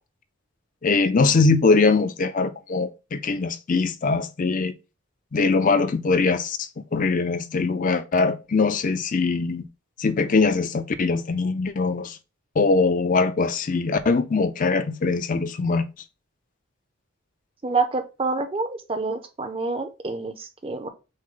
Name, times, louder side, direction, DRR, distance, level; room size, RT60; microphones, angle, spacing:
voice 1, 0.8-4.7 5.3-9.7 10.0-12.2 12.6-15.8, left 4 dB, 40° left, 0.4 m, -22 dB
voice 2, 17.6-20.9, right 3 dB, 25° right, 0.6 m, -27 dB
6.3 x 2.1 x 3.7 m
head